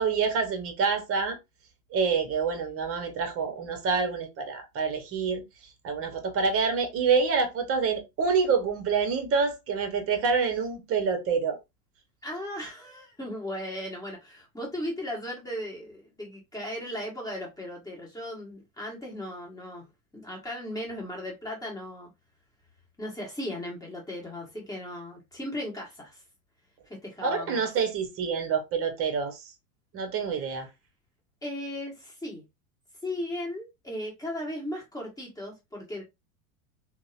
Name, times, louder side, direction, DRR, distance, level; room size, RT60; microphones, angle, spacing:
voice 1, 0.0-1.4 1.9-5.4 5.8-11.6 27.2-29.4 29.9-30.7, right 5 dB, 30° right, 0.8 m, -27 dB
voice 2, 12.2-19.9 20.1-22.1 23.0-26.2 26.9-27.6 31.4-32.4 33.0-36.0, left 1 dB, 10° left, 1.1 m, -36 dB
2.8 x 2.1 x 2.4 m
hypercardioid pair, 105°, 44 cm